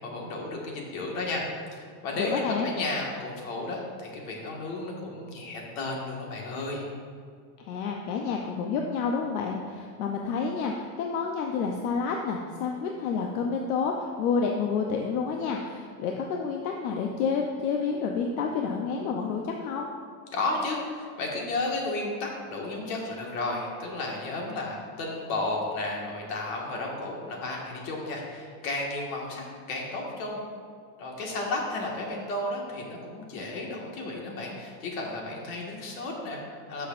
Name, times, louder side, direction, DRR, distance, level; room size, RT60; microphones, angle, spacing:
voice 1, 0.0-6.8 20.3-30.4 31.0-36.9, left 2 dB, 65° left, -1 dB, 1.9 m, -33 dB
voice 2, 2.2-2.7 7.6-19.9, left 5 dB, 85° left, 1 dB, 0.8 m, -29 dB
12.5 x 6.4 x 2.6 m, 2.1 s
cardioid pair, 180°, 42 cm